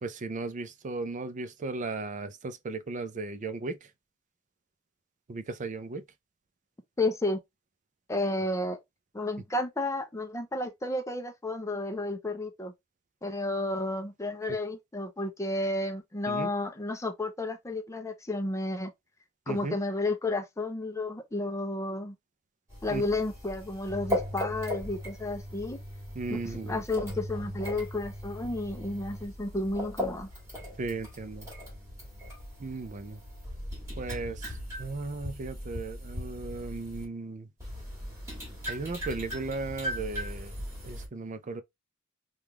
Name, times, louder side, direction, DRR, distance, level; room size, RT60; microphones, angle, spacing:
voice 1, 0.0-3.9 5.3-6.0 16.3-16.5 19.5-19.8 22.9-23.0 26.1-26.8 30.8-31.5 32.6-33.2 34.0-34.5 34.8-37.5 38.7-40.5 40.8-41.6, right 3 dB, 35° right, 0.4 m, -36 dB
voice 2, 7.0-7.4 8.1-8.8 9.1-12.7 13.2-18.9 19.5-22.2 22.8-25.8 26.3-30.3, left 2 dB, 15° left, 0.5 m, -32 dB
sound 1, 22.7-37.0 37.6-41.1, equal, 15° right, 1.5 m, -38 dB
3.4 x 2.4 x 2.9 m
head